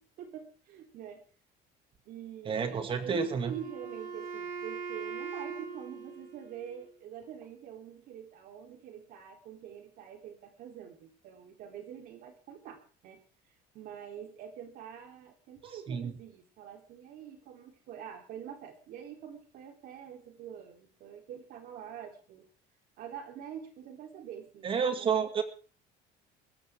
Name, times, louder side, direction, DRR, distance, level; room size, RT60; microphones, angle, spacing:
voice 1, 0.2-1.2 2.1-13.2 13.7-22.5 23.0-25.2, right 9 dB, 55° right, 4 dB, 3.5 m, -46 dB
voice 2, 2.5-3.5 15.9-16.1 24.6-25.4, right 6 dB, 30° right, 7 dB, 2.3 m, -30 dB
Wind instrument woodwind instrument, 3.0-7.0, right 6 dB, 85° right, 4.3 m, -42 dB
21.0 x 15.0 x 3.6 m, 0.38 s
cardioid pair, 165°, 18 cm